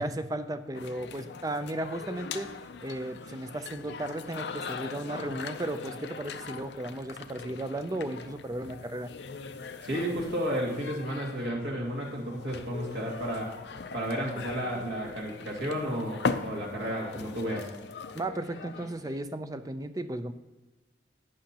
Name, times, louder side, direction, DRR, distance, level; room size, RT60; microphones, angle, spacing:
voice 1, 0.0-2.5 2.8-9.1 18.1-20.3, right 1 dB, 20° right, 10 dB, 0.4 m, -35 dB
sound 1, 0.7-19.2, left 4 dB, 65° left, 0.5 m, -40 dB
voice 2, 9.8-13.5 13.9-17.7, equal, 65° right, -2 dB, 2.3 m, -32 dB
11.5 x 8.7 x 2.9 m, 1.1 s
head